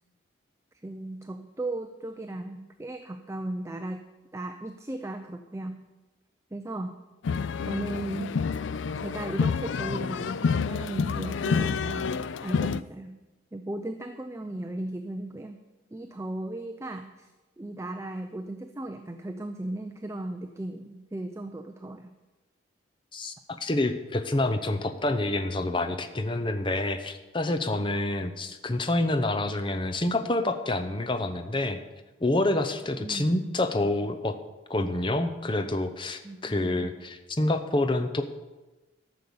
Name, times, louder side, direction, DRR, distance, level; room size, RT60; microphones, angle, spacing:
voice 1, 0.8-5.9 6.5-7.0 7.7-8.4 9.0-13.2 13.5-15.6 15.9-17.3 17.6-22.1 33.0-33.3 36.2-36.9, right 1 dB, 15° right, 6 dB, 0.5 m, -36 dB
sound 1, 7.2-12.8, left 5 dB, 75° left, 0.4 m, -28 dB
voice 2, 23.1-31.8 32.2-34.4 34.7-38.2, left 2 dB, 25° left, 8 dB, 0.7 m, -27 dB
13.0 x 6.6 x 7.0 m, 1.1 s
head